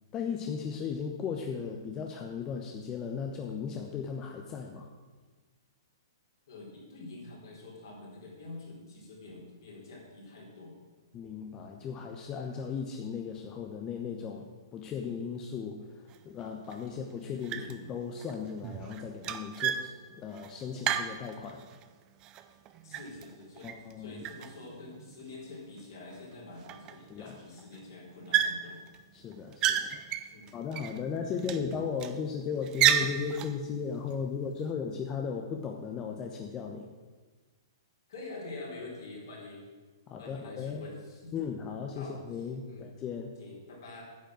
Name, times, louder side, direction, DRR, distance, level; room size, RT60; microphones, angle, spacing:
voice 1, 0.1-4.9 11.1-19.9 20.2-21.6 23.6-24.2 27.1-27.3 29.1-29.9 30.5-36.9 40.1-40.8 41.3-43.3, left 6 dB, 25° left, 2 dB, 1.0 m, -36 dB
voice 2, 6.5-10.8 17.3-17.7 22.8-23.7 24.0-28.8 30.3-30.5 38.1-39.7 40.2-41.3 41.9-42.2 42.6-42.9 43.4-44.0, left 2 dB, 65° left, -3 dB, 4.2 m, -46 dB
sound 1, 16.1-16.2 16.7-17.1 17.4-17.9 18.2-21.8 22.2-23.9 24.2-25.2 25.8-25.9 26.1-26.2 26.6-27.3 27.6-27.8 28.3-29.0 29.3-31.0 31.4-32.2 32.6-33.6, right 10 dB, 30° right, 0.7 m, -32 dB
9.5 x 6.8 x 7.7 m, 1.3 s
figure-of-eight pair, 115°, 2 cm